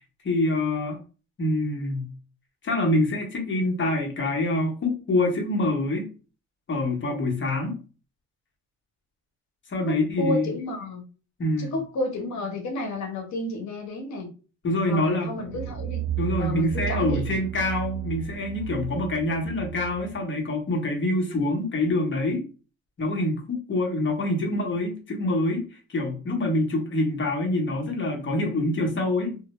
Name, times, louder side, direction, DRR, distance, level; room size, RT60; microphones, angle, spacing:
voice 1, 0.2-1.0 1.4-2.1 2.6-6.1 6.7-7.8 9.7-10.5 11.4-11.7 14.6-15.3 16.2-22.4 23.0-25.6 25.9-29.4, left 1 dB, 40° left, 1 dB, 0.9 m, -25 dB
voice 2, 9.9-11.0 11.6-14.3 14.8-16.0 16.4-17.3, left 2 dB, 65° left, 3 dB, 0.9 m, -31 dB
sound 1, 15.3-20.2, right 11 dB, 30° right, 0.8 m, -33 dB
2.1 x 2.1 x 2.9 m, 0.35 s
cardioid pair, 90°, 30 cm